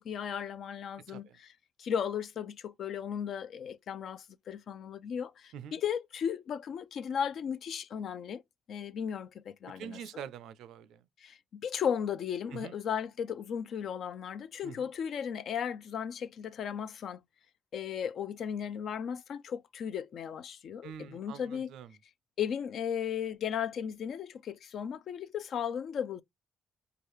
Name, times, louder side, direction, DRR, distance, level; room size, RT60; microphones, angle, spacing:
voice 1, 0.0-1.5 1.8-8.4 8.7-10.0 11.2-17.2 17.7-21.7 22.4-26.2, left 8 dB, 65° left, 0.4 m, -36 dB
voice 2, 1.1-1.4 5.5-5.8 9.7-11.0 12.5-12.8 14.6-14.9 20.8-21.9, right 8 dB, 85° right, 0.4 m, -45 dB
4.7 x 2.4 x 2.9 m
cardioid pair, 90°, 0 cm